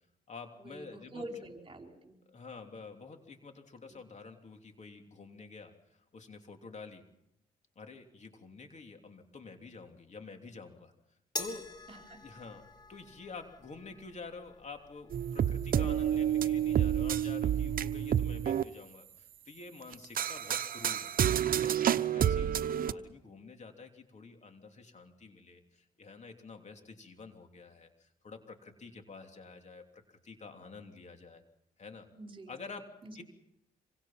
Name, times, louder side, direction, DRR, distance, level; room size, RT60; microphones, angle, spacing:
voice 1, 0.3-1.2 2.3-7.0 7.7-10.9 11.4-11.6 12.2-12.6 12.9-21.2 21.6-22.6 22.9-31.4 31.8-32.1 32.5-32.9 33.1-33.2, left 4 dB, 50° left, 4 dB, 3.2 m, -49 dB
voice 2, 1.1-2.1 3.9-4.0 12.1-12.2 22.5-23.1 32.1-32.5 33.0-33.1, right 1 dB, 35° right, 3 dB, 4.6 m, -46 dB
sound 1, 11.4-17.9, left 2 dB, 25° left, 3.7 m, -47 dB
sound 2, 15.1-18.6 19.9-22.9, right 9 dB, 65° right, 0.9 m, -29 dB
26.0 x 25.0 x 5.9 m, 0.81 s
cardioid pair, 80°, 16 cm